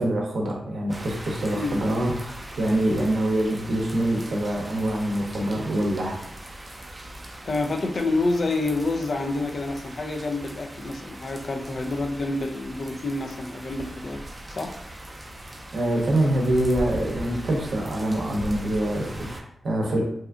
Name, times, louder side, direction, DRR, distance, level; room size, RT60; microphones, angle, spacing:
voice 1, 0.0-6.2 15.7-20.0, right 1 dB, 75° right, -1 dB, 0.6 m, -25 dB
sound 1, 0.9-19.4, right 1 dB, 35° right, 0.4 m, -39 dB
voice 2, 7.5-14.2 14.5-14.7, left 2 dB, 60° left, 4 dB, 0.3 m, -28 dB
2.6 x 2.4 x 2.3 m, 0.70 s
cardioid pair, 45°, 0 cm